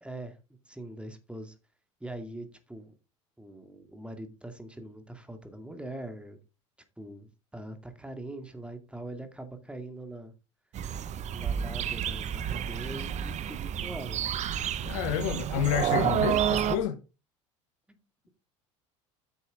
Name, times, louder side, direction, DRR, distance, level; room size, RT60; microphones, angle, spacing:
voice 1, 0.0-0.4 0.7-1.6 2.0-2.9 3.4-6.4 7.0-10.3 11.3-14.3 17.9-18.0, right 1 dB, 5° right, 2.3 m, -42 dB
sound 1, 10.7-16.8, right 9 dB, 45° right, 1.0 m, -30 dB
voice 2, 14.8-17.0, left 10 dB, 75° left, 1.2 m, -29 dB
9.4 x 6.7 x 3.6 m
hypercardioid pair, 75°, 16 cm